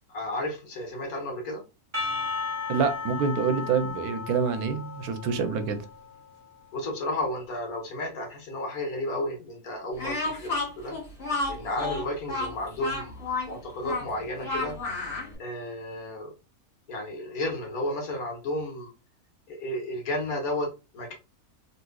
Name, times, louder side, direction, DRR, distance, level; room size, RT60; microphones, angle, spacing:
voice 1, 0.1-1.6 6.7-10.9 11.5-14.8 15.4-16.3 16.9-18.9 19.5-21.1, left 1 dB, 75° left, 1.5 m, -32 dB
Percussion / Church bell, 1.9-6.5, left 4 dB, 10° right, 0.9 m, -35 dB
voice 2, 2.7-5.8, right 6 dB, 85° right, 1.1 m, -26 dB
Speech, 10.0-15.3, left 3 dB, 35° left, 1.5 m, -31 dB
4.0 x 2.6 x 2.2 m
omnidirectional pair, 1.6 m